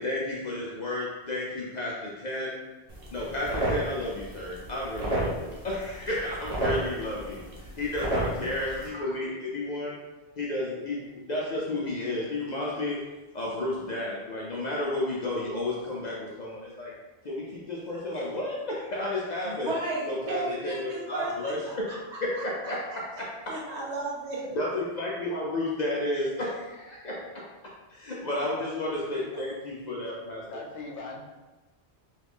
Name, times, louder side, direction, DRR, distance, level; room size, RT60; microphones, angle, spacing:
voice 1, 0.0-2.5 3.1-10.0 10.4-13.0 13.3-16.9 17.2-19.7 20.1-21.9 22.2-23.3 24.5-27.2 27.9-30.6, left 1 dB, 55° left, -5 dB, 0.5 m, -32 dB
sound 1, 2.9-8.9, right 1 dB, 40° right, 0.7 m, -33 dB
voice 2, 19.4-21.5 21.9-22.4 23.5-24.5, right 2 dB, 70° right, -4 dB, 1.2 m, -34 dB
voice 3, 30.5-31.2, left 3 dB, 80° left, 0 dB, 0.9 m, -40 dB
3.0 x 2.4 x 3.5 m, 1.2 s
omnidirectional pair, 1.2 m